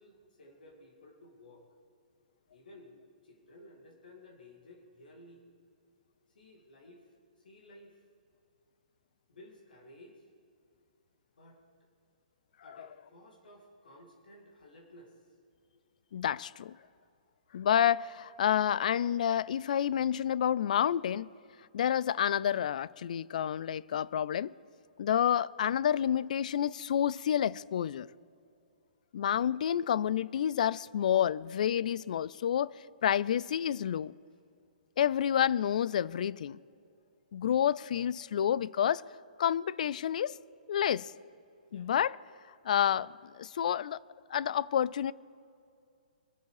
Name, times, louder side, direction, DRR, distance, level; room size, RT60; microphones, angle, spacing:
voice 1, 0.0-1.7 2.5-5.4 6.3-8.0 9.3-10.3 11.4-11.6 12.6-15.3 34.3-34.4 41.7-41.9, left 1 dB, 80° left, 2.5 m, -55 dB
voice 2, 16.1-16.8 17.5-21.3 21.7-24.5 25.0-28.1 29.1-32.7 33.0-34.1 35.0-36.6 37.3-39.0 39.4-40.4 40.7-41.1 41.7-42.2 42.6-44.0 44.3-45.1, left 9 dB, 60° left, 0.4 m, -29 dB
23.0 x 8.0 x 4.9 m
hypercardioid pair, 150°, 5 cm